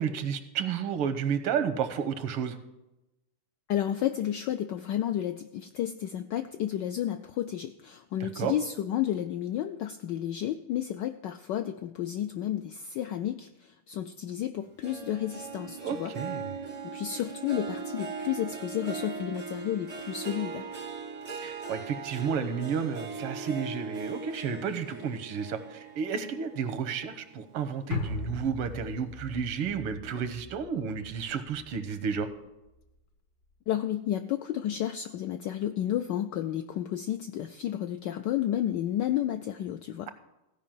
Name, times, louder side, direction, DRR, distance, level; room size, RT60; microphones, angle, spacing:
voice 1, 0.0-2.6 8.2-8.5 15.8-16.4 21.4-32.3, right 7 dB, 85° right, 9 dB, 1.8 m, -32 dB
voice 2, 3.7-16.1 16.8-20.7 33.7-40.1, left 11 dB, 80° left, 8 dB, 0.9 m, -31 dB
Harp, 14.8-27.5 28.0-28.4 28.8-28.9, right 4 dB, 50° right, 0.4 m, -39 dB
sound 1, 27.9-32.4 32.7-32.8, left 4 dB, 60° left, 1.1 m, -39 dB
15.5 x 5.3 x 7.3 m, 0.95 s
omnidirectional pair, 2.4 m